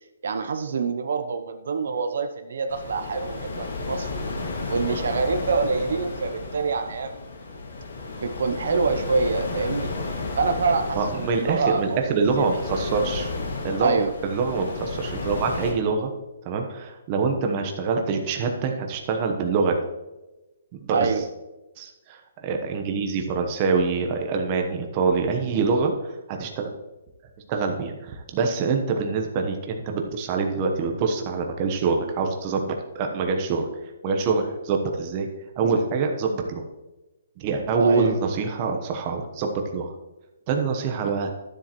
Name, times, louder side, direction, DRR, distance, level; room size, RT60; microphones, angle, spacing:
voice 1, 0.2-4.1 4.7-7.1 8.2-9.9 10.4-12.5 13.8-14.1 20.9-21.3 37.8-38.2, right 4 dB, 65° right, 7 dB, 0.7 m, -26 dB
sound 1, 2.7-15.7, left 3 dB, 70° left, 2.1 m, -33 dB
voice 2, 11.0-13.3 13.6-16.1 16.4-19.8 20.8-21.1 21.8-26.7 27.5-33.7 34.0-35.3 35.6-36.6 37.4-39.9 40.5-41.3, right 4 dB, 25° right, 3 dB, 1.0 m, -25 dB
12.5 x 7.4 x 3.1 m, 1.0 s
hypercardioid pair, 165°, 0 cm